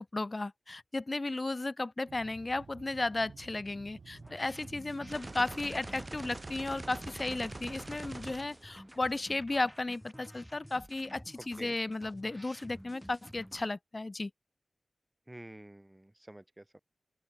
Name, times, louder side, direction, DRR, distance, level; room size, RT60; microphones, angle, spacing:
voice 1, 0.0-14.3, left 2 dB, 45° left, 0.6 m, -34 dB
sound 1, 2.1-8.5, right 5 dB, 85° right, 6.5 m, -53 dB
sound 2, 4.1-13.7, equal, ahead, 4.2 m, -52 dB
sound 3, 5.1-9.3, right 2 dB, 35° right, 1.4 m, -45 dB
voice 2, 15.3-16.8, right 1 dB, 20° right, 1.6 m, -49 dB
open air
cardioid pair, 45°, 0 cm